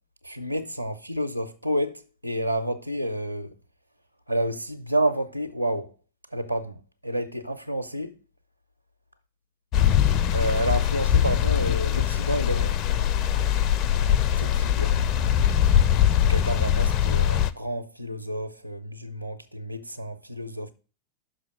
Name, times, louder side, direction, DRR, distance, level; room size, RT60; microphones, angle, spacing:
voice 1, 0.2-3.5 4.3-5.9 6.3-6.8 7.0-8.2 10.3-12.8 14.4-14.9 16.2-20.7, right 1 dB, 90° left, 0.5 m, -29 dB
sound 1, 9.7-17.5, left 10 dB, 35° left, 0.5 m, -22 dB
6.1 x 5.0 x 6.0 m
figure-of-eight pair, 90°, 0 cm